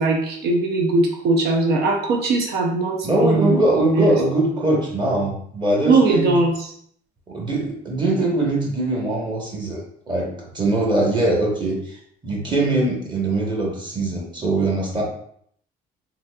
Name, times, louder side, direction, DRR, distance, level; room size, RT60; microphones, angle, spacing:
voice 1, 0.0-3.6 4.0-4.1 5.9-6.5, right 3 dB, 70° right, 2 dB, 0.6 m, -20 dB
voice 2, 3.0-6.3 7.3-15.0, right 2 dB, 25° right, -2 dB, 1.0 m, -22 dB
3.9 x 2.6 x 2.2 m, 0.65 s
cardioid pair, 110°, 17 cm